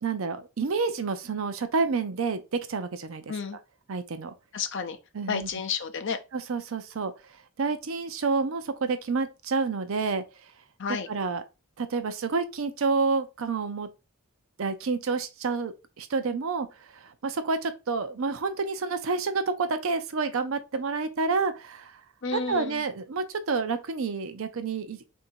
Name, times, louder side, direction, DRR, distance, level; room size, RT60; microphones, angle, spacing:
voice 1, 0.0-3.2 3.9-4.3 5.1-5.5 6.3-7.1 7.6-10.2 11.1-11.4 11.8-13.9 14.6-16.7 16.9-21.9 22.3-25.0, right 4 dB, 65° right, 0.5 m, -29 dB
voice 2, 4.5-5.0 5.3-6.2 10.8-11.1 22.2-22.8, left 5 dB, 55° left, 0.6 m, -31 dB
3.7 x 2.7 x 4.3 m
head